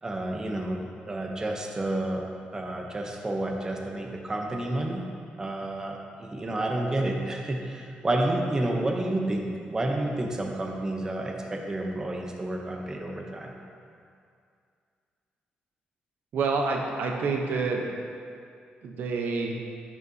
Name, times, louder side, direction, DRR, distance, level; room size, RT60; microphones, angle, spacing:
voice 1, 0.0-2.3 2.5-5.1 5.4-13.5, right 1 dB, 20° right, 1 dB, 0.6 m, -30 dB
voice 2, 16.3-18.0 18.8-19.6, right 4 dB, 75° right, 2 dB, 0.7 m, -28 dB
11.0 x 5.4 x 2.7 m, 2.3 s
cardioid pair, 130°, 3 cm